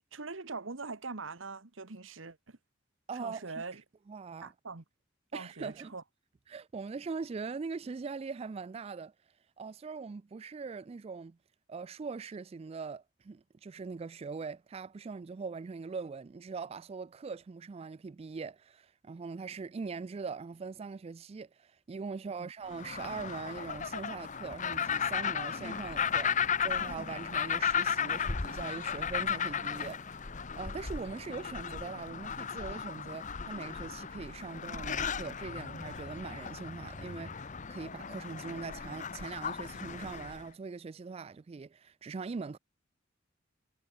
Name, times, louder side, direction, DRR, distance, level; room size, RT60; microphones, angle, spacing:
voice 1, 0.1-2.6 3.1-3.8 4.4-4.8 5.3-6.0 22.3-22.5, right 4 dB, 80° right, 1.4 m, -42 dB
voice 2, 3.1-3.5 4.1-4.5 5.3-5.9 6.5-9.1 9.6-11.4 11.7-30.3 30.6-42.6, right 4 dB, 30° right, 0.3 m, -41 dB
sound 1, 22.7-40.4, left 7 dB, 40° left, 1.0 m, -35 dB
head